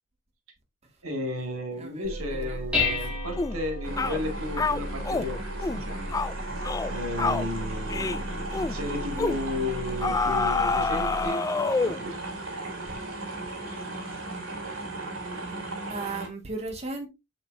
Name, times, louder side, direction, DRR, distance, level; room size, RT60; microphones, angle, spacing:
voice 1, 1.0-6.2 6.9-12.2, left 1 dB, 85° right, 2.5 m, -34 dB
voice 2, 1.8-3.0 15.9-17.1, right 3 dB, 30° right, 2.1 m, -36 dB
Dishes pots and pans, 2.0-11.3, left 2 dB, 5° right, 5.1 m, -34 dB
sound 1, 3.4-3.6 4.0-4.2 4.6-5.3 5.6-5.8 6.1-6.3 6.6-6.9 7.2-7.5 7.9-8.2 8.5-8.8 9.2-9.4 10.0-12.1, left 4 dB, 15° left, 0.3 m, -27 dB
sound 2, 3.8-16.3, right 2 dB, 70° right, 3.5 m, -36 dB
8.4 x 7.1 x 2.7 m
head